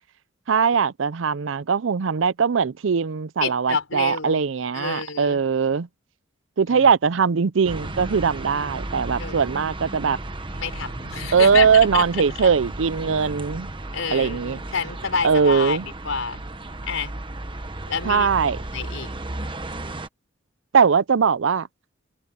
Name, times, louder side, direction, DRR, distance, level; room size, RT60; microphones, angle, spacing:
voice 1, 0.5-5.9 6.6-10.2 11.3-13.7 14.1-14.6 15.2-15.9 18.0-18.6 20.7-21.7, right 6 dB, 70° right, 0.5 m, -20 dB
voice 2, 3.4-4.4 4.7-5.4 6.7-6.9 9.2-9.5 10.6-12.5 13.9-15.8 16.0-16.4 16.9-17.1 17.9-18.3 18.7-19.1, left 5 dB, 85° left, 4.4 m, -28 dB
sound 1, 7.6-20.1, right 2 dB, 25° right, 1.2 m, -34 dB
open air
head